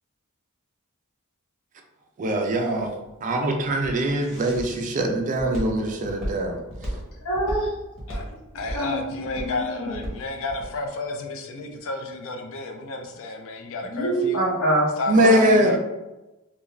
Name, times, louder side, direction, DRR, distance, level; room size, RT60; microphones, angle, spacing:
voice 1, 2.2-2.9 3.2-6.6 15.1-15.8, right 1 dB, 35° right, 3 dB, 0.4 m, -22 dB
Walk footsteps, 2.6-10.8, equal, ahead, 1.1 m, -35 dB
voice 2, 7.2-7.7 8.7-9.0 9.3-10.0 13.9-14.8 15.2-15.6, right 1 dB, 80° left, -9 dB, 1.1 m, -25 dB
voice 3, 8.5-14.4 15.0-15.8, left 2 dB, 60° left, 4 dB, 0.4 m, -31 dB
2.5 x 2.3 x 3.0 m, 1.0 s
head